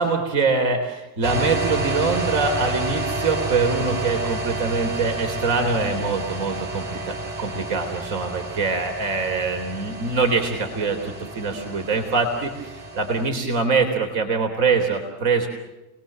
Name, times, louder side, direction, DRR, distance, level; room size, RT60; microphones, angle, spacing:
voice 1, 0.0-15.5, right 4 dB, 70° right, 4 dB, 3.6 m, -24 dB
sound 1, 1.2-13.3, right 2 dB, 55° right, 5.8 m, -30 dB
29.0 x 20.0 x 7.6 m, 1.0 s
supercardioid pair, 95°, 38 cm